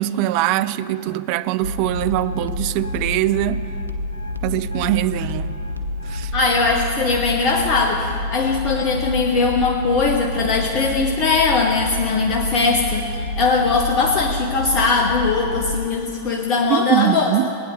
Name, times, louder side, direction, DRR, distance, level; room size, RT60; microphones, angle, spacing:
voice 1, 0.0-3.6 4.4-5.6 6.0-6.3 16.7-17.5, right 14 dB, 45° right, 0.4 m, -22 dB
sound 1, 1.6-15.9, left 2 dB, 80° left, 0.9 m, -28 dB
voice 2, 6.3-13.0 13.4-17.3, left 4 dB, 40° left, 1.0 m, -20 dB
18.0 x 9.4 x 6.8 m
figure-of-eight pair, 90°, 0 cm